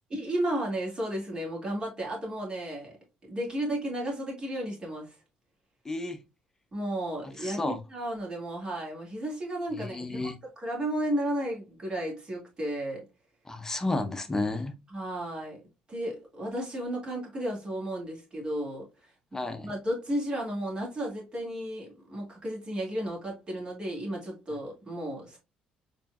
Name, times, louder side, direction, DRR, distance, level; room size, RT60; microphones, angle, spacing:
voice 1, 0.1-3.0 3.3-5.2 6.7-13.0 14.9-15.6 15.9-25.4, right 1 dB, 30° right, 2.2 m, -33 dB
voice 2, 5.8-6.2 7.4-7.8 9.7-10.3 13.5-14.7 19.3-19.7, left 2 dB, 20° left, 0.7 m, -32 dB
4.4 x 3.1 x 2.3 m
cardioid pair, 95°, 3 cm